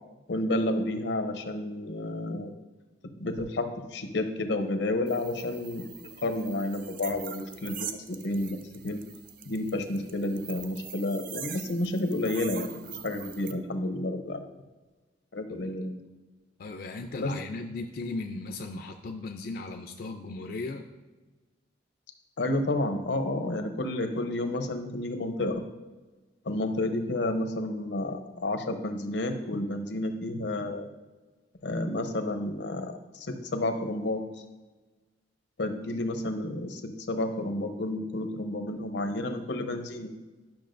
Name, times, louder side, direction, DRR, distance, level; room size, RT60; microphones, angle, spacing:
voice 1, 0.3-2.5 3.2-9.0 9.4-14.4 15.3-16.0 17.2-17.3 22.4-25.6 26.4-30.9 31.6-34.2 35.6-40.1, left 1 dB, 90° left, 7 dB, 0.8 m, -31 dB
sound 1, 5.1-13.5, right 8 dB, 50° right, 0.4 m, -43 dB
voice 2, 16.6-20.8, left 3 dB, 55° left, 4 dB, 0.4 m, -37 dB
10.5 x 5.9 x 2.6 m, 1.2 s
head